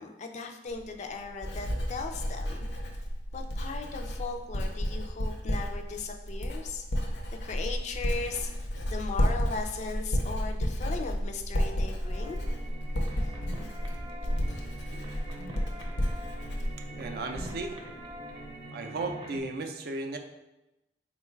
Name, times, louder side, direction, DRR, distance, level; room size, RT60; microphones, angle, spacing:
voice 1, 0.0-2.7 3.3-6.9 7.4-8.5 8.9-12.4, left 4 dB, 40° left, 4 dB, 0.3 m, -37 dB
Writing, 0.7-17.7 18.0-18.5, equal, 80° left, 0.6 m, -32 dB
sound 1, 11.7-19.4, right 1 dB, 25° right, 0.6 m, -44 dB
voice 2, 16.9-17.8 18.7-20.2, right 3 dB, 60° right, 4 dB, 0.4 m, -35 dB
3.8 x 2.3 x 4.4 m, 0.97 s
head